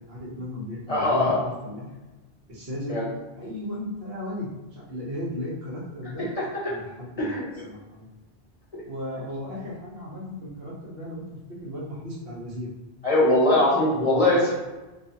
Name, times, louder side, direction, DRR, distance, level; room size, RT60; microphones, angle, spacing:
voice 1, 0.1-1.9 2.5-3.0 3.3-6.3 6.7-8.1 8.8-12.7 13.9-14.4, left 1 dB, 70° right, -5 dB, 1.0 m, -36 dB
voice 2, 0.9-1.4 2.9-3.0 7.2-7.6 8.7-8.8 13.0-14.5, left 1 dB, 40° left, -6 dB, 0.7 m, -21 dB
2.4 x 2.4 x 2.7 m, 1.1 s
omnidirectional pair, 1.0 m